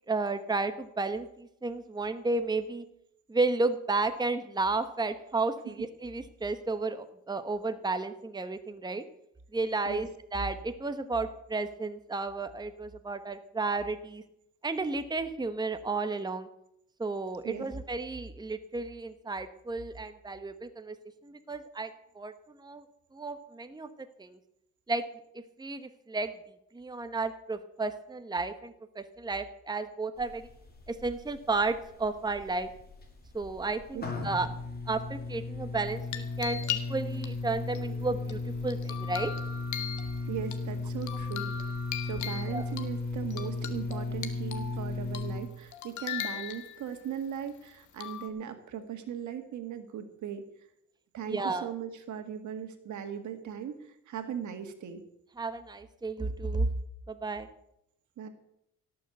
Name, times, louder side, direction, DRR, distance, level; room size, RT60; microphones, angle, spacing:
voice 1, 0.1-2.8 3.3-9.0 9.5-14.2 14.6-16.5 17.0-21.0 21.2-21.9 22.1-22.8 23.1-23.9 24.2-24.4 24.9-25.0 25.3-26.3 26.7-30.5 30.9-32.7 33.3-34.5 34.9-39.3 42.5-42.7 51.3-51.7 55.4-56.7 57.1-57.5, right 3 dB, 15° right, 9 dB, 1.1 m, -32 dB
sound 1, 30.2-45.4, left 3 dB, 30° left, 3.8 m, -36 dB
sound 2, 35.8-37.2 37.7-40.6 41.0-42.9 43.3-44.8 45.1-45.4 45.7-47.0 48.0-48.3, left 9 dB, 75° left, 1.8 m, -39 dB
voice 2, 40.3-41.7 42.0-50.4 51.1-55.0 58.2-58.3, right 8 dB, 70° right, 8 dB, 2.0 m, -38 dB
17.5 x 6.9 x 8.0 m, 0.78 s
cardioid pair, 90°, 30 cm